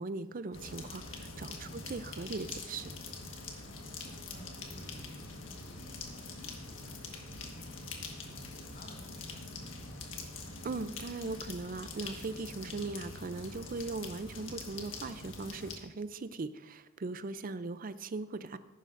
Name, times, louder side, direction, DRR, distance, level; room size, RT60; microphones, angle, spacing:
voice 1, 0.0-2.9 10.6-18.6, right 3 dB, 45° right, 13 dB, 0.5 m, -39 dB
sound 1, 0.5-15.8, left 3 dB, 80° left, 1.5 m, -44 dB
voice 2, 4.2-7.9 8.2-9.9, equal, 50° left, -2 dB, 4.0 m, -55 dB
14.0 x 11.5 x 2.6 m, 1.1 s
head